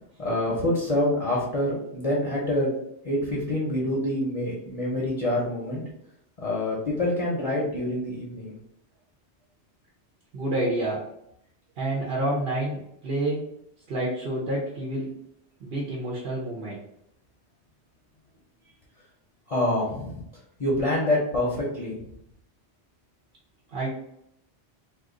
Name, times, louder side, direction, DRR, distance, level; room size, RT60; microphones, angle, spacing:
voice 1, 0.2-2.7 3.0-5.8 6.4-8.5 19.5-20.2 20.6-22.0, left 1 dB, 40° left, -4 dB, 0.7 m, -26 dB
voice 2, 10.3-11.0 11.8-13.5 13.9-15.2 15.6-16.8 23.7-23.9, right 1 dB, 60° right, -3 dB, 0.9 m, -28 dB
2.4 x 2.4 x 3.7 m, 0.75 s
omnidirectional pair, 1.1 m